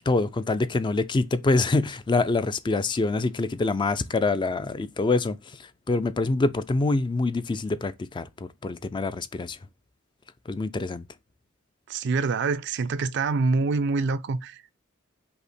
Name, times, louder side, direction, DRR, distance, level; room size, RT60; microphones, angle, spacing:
voice 1, 0.1-5.4 5.9-9.6 10.5-11.0, left 3 dB, 25° left, 0.3 m, -25 dB
voice 2, 11.9-14.7, right 4 dB, 60° right, 0.4 m, -26 dB
5.5 x 2.1 x 4.2 m
head